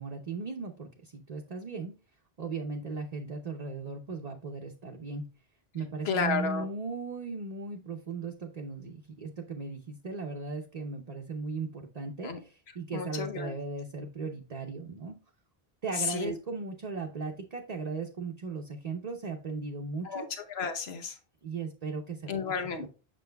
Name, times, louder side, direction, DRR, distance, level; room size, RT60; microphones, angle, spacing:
voice 1, 0.0-1.9 2.4-5.3 5.7-15.2 15.8-20.3 21.4-22.4 22.8-22.9, right 4 dB, 45° right, 2 dB, 0.8 m, -37 dB
voice 2, 6.0-6.7 12.2-12.4 12.9-13.5 16.0-16.4 20.0-20.2 20.5-21.2 22.3-22.9, left 6 dB, 85° left, 6 dB, 1.2 m, -32 dB
7.5 x 6.2 x 2.2 m, 0.34 s
omnidirectional pair, 1.0 m